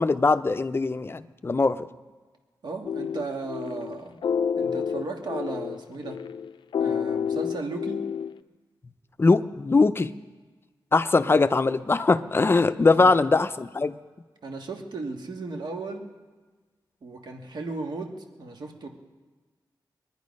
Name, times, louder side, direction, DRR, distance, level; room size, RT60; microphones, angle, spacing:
voice 1, 0.0-1.9 9.2-10.1 10.9-14.0, left 3 dB, 30° left, 12 dB, 0.5 m, -21 dB
voice 2, 2.6-4.2 4.6-6.2 6.7-8.0 12.9-13.1 14.4-16.1 17.0-18.9, right 3 dB, 65° right, 3 dB, 1.7 m, -35 dB
sound 1, 2.8-8.4, left 7 dB, 90° left, 0.4 m, -29 dB
22.5 x 10.5 x 5.3 m, 1.4 s
wide cardioid pair, 140°, 8 cm